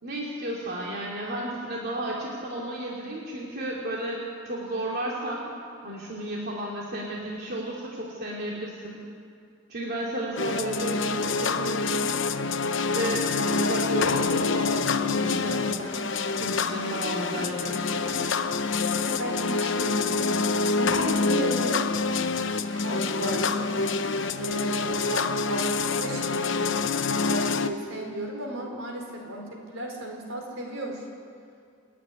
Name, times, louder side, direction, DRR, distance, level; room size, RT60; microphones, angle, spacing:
voice 1, 0.0-5.5 5.8-9.0 9.7-12.1 12.9-15.9 16.4-18.3, right 1 dB, 55° right, -4 dB, 2.8 m, -33 dB
sound 1, 10.4-27.7, left 4 dB, 65° left, 0.9 m, -26 dB
voice 2, 18.9-21.8 22.7-23.7 24.4-26.5 27.2-31.0, right 1 dB, 75° right, 1 dB, 4.7 m, -34 dB
29.0 x 10.0 x 9.8 m, 2.3 s
head